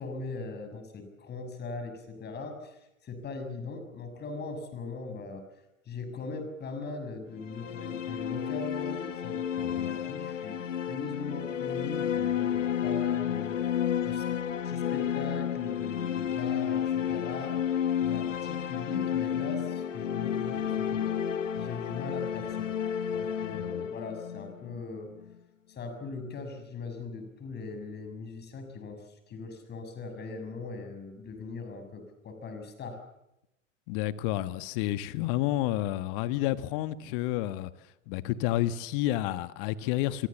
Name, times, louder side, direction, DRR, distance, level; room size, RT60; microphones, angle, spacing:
voice 1, 0.0-5.5 5.9-14.3 14.6-17.6 18.0-21.1 21.5-22.7 23.1-25.1 25.7-33.0, left 4 dB, 25° left, 6.3 m, -40 dB
sound 1, 7.4-25.3, left 9 dB, 70° left, 1.2 m, -31 dB
voice 2, 23.5-23.8 33.9-37.7 38.1-40.3, left 14 dB, 45° left, 1.5 m, -30 dB
27.0 x 23.0 x 7.2 m
figure-of-eight pair, 90°, 39 cm